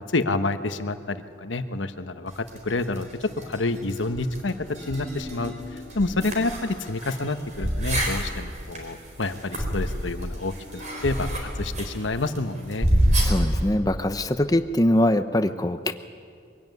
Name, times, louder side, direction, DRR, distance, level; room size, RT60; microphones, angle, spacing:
voice 1, 0.0-4.5 4.9-12.9, left 2 dB, 90° left, 9 dB, 1.1 m, -28 dB
sound 1, 2.3-13.7, right 1 dB, 40° right, 4.0 m, -29 dB
voice 2, 13.2-15.9, left 1 dB, 20° left, 8 dB, 0.8 m, -22 dB
23.0 x 16.5 x 9.4 m, 2.2 s
head